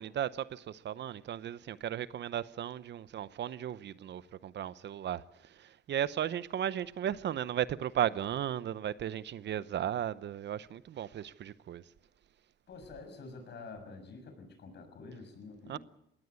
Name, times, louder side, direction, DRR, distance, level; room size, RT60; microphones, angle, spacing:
voice 1, 0.0-11.8 15.7-15.8, right 10 dB, 60° right, 0.8 m, -35 dB
voice 2, 12.7-15.8, left 3 dB, 60° left, 6.6 m, -48 dB
22.0 x 17.5 x 8.3 m
cardioid pair, 90°, 20 cm